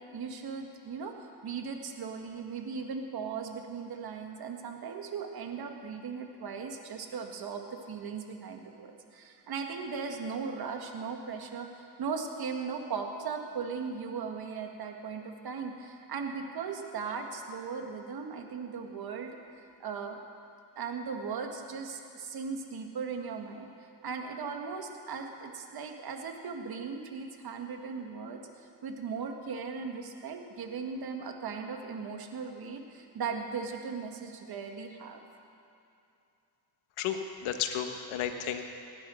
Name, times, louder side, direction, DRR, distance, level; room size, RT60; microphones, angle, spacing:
voice 1, 0.0-19.4 19.8-20.2 20.8-23.7 24.0-35.2, right 5 dB, 50° right, 3 dB, 2.0 m, -38 dB
voice 2, 37.0-38.7, left 8 dB, 80° left, 6 dB, 1.5 m, -33 dB
18.0 x 10.5 x 6.5 m, 2.7 s
cardioid pair, 95°, 47 cm